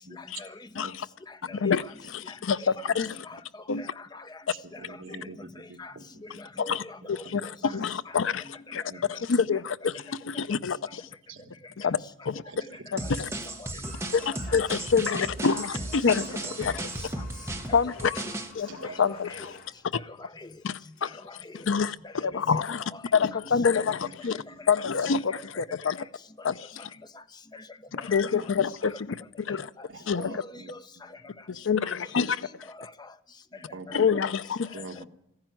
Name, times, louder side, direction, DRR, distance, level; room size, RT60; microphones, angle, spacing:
voice 1, 0.1-0.9 1.3-1.9 2.2-2.9 3.2-4.4 4.7-5.2 5.6-7.8 8.1-8.7 9.1-9.2 11.8-11.9 12.6-12.7 13.0-13.1 13.5-13.9 14.3-14.6 15.5-15.8 16.3-16.9 17.2-17.3 17.7-17.9 18.2-18.4 18.8-19.5 19.9-20.6 21.0-21.7 22.0-22.6 22.9-23.0 23.3-23.8 24.3-24.8 25.2-25.4 26.0-26.1 26.4-26.5 26.8-26.9 27.1-27.2 27.5-27.7 28.0-28.2 29.8-29.9 30.2-31.1 31.8-32.3 32.7-33.1 34.0-34.2, left 2 dB, 20° left, 0.6 m, -45 dB
voice 2, 0.8-1.1 1.6-1.8 2.1-3.2 3.7-3.8 6.7-6.8 7.1-8.4 8.7-8.8 9.1-11.0 11.8-12.0 12.3-12.4 12.9-13.3 14.1-16.3 16.6-16.7 17.7-18.1 18.6-18.7 19.0-19.5 20.6-20.7 21.0-21.1 21.7-22.0 22.2-22.8 23.1-24.4 24.7-26.0 26.4-26.5 27.9-29.1 29.5-29.7 30.1-30.4 31.5-32.5 33.9-34.7, left 6 dB, 65° left, 0.5 m, -26 dB
voice 3, 4.5-6.0 6.3-6.4 7.0-7.1 7.6-8.0 8.9-9.0 11.3-11.4 12.4-12.8 16.0-16.8 17.1-17.2 18.7-19.2 19.5-19.6 23.1-23.2 23.6-24.1 24.5-24.6 28.3-28.5 29.9-30.7 33.5-34.1 34.7-35.0, right 2 dB, 70° right, 1.3 m, -45 dB
sound 1, 13.0-18.5, right 2 dB, 15° right, 1.1 m, -35 dB
sound 2, 13.8-19.7, left 5 dB, 45° left, 2.8 m, -49 dB
15.0 x 10.5 x 9.0 m
head